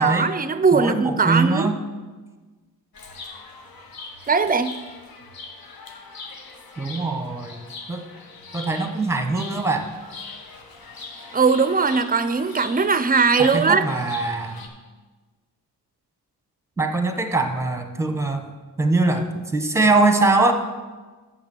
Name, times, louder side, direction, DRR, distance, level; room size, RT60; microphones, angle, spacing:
voice 1, 0.0-1.7 4.3-4.7 11.3-13.8, right 5 dB, 25° right, 12 dB, 0.5 m, -19 dB
voice 2, 0.7-1.8 6.8-7.6 7.9-8.0 8.5-9.9 13.4-14.7 16.8-18.5 18.8-20.5, right 3 dB, 5° right, 5 dB, 1.0 m, -22 dB
Chirp tweet, 2.9-14.7, left 4 dB, 65° left, 1.2 m, -41 dB
6.9 x 5.8 x 7.0 m, 1.3 s
cardioid pair, 80°, 39 cm